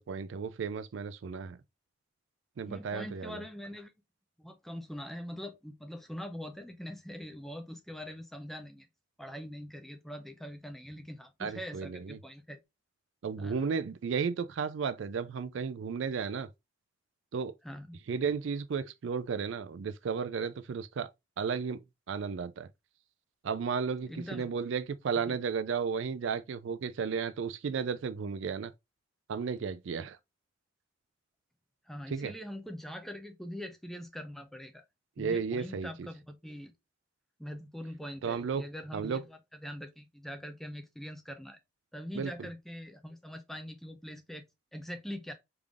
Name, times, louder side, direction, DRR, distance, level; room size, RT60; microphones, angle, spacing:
voice 1, 0.0-1.6 2.6-3.4 11.4-12.2 13.2-16.5 17.3-17.5 18.1-21.1 21.4-21.8 22.1-22.7 23.4-28.7 29.3-30.2 32.1-32.3 35.2-36.1 38.2-38.6 38.9-39.2 42.1-42.5, right 6 dB, 65° right, 0.4 m, -34 dB
voice 2, 2.6-3.9 4.4-8.9 9.2-12.6 13.4-13.6 17.6-18.0 24.0-24.5 25.1-25.4 31.9-34.8 35.2-36.7 37.4-41.6 41.9-44.4 44.7-45.3, equal, ahead, 0.4 m, -43 dB
3.5 x 3.4 x 2.4 m
head